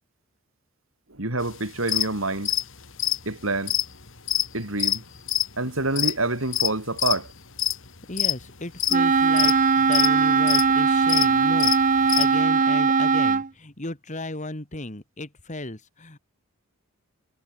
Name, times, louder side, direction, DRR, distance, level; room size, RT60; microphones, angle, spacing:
voice 1, 1.1-2.6 3.3-3.8 4.5-5.0 5.6-7.3, right 2 dB, 70° right, 5.3 m, -27 dB
sound 1, 1.5-1.6 1.9-2.1 2.3-6.7 7.0-7.3 7.6-7.9 8.2-8.5 8.8-9.6 9.9-10.1 10.4-10.7 11.1-11.3 11.5-12.3, left 12 dB, 65° left, 3.2 m, -24 dB
voice 2, 8.1-16.2, left 2 dB, 35° left, 2.3 m, -35 dB
Wind instrument woodwind instrument, 8.9-13.5, right 5 dB, 40° right, 0.7 m, -20 dB
head